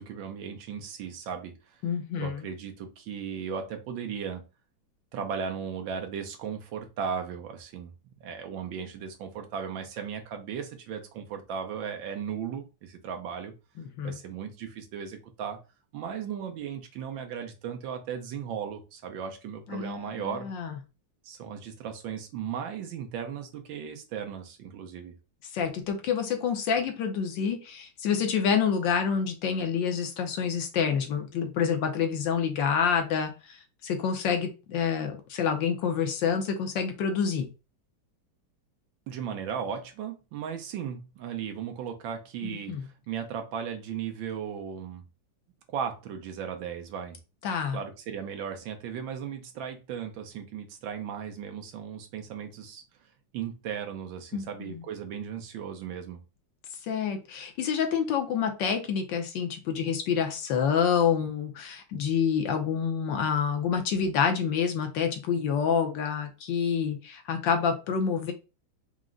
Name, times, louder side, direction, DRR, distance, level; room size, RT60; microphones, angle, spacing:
voice 1, 0.0-1.8 2.2-4.4 5.1-7.9 8.2-13.5 14.0-15.6 15.9-20.5 21.2-25.1 39.1-45.0 45.7-47.2 47.7-52.8 53.3-56.2, right 7 dB, 75° right, 1.5 m, -36 dB
voice 2, 1.8-2.4 13.8-14.2 19.7-20.8 25.5-33.6 33.8-37.5 42.4-42.8 47.4-47.8 54.3-54.8 56.8-68.3, left 7 dB, 70° left, 1.4 m, -28 dB
4.9 x 2.1 x 3.7 m
omnidirectional pair, 2.2 m